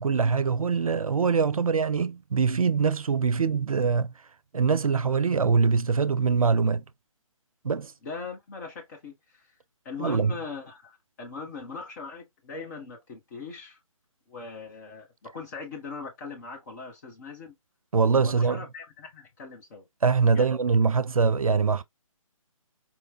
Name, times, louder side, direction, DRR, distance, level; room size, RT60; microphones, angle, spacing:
voice 1, 0.0-4.1 4.5-6.8 7.6-7.9 10.0-10.3 17.9-18.6 20.0-21.8, right 5 dB, 80° right, 0.5 m, -23 dB
voice 2, 8.0-9.4 9.8-13.8 14.3-17.5 18.2-19.9 20.3-20.5, left 4 dB, 30° left, 1.6 m, -40 dB
4.5 x 3.2 x 2.4 m
figure-of-eight pair, 145°, 18 cm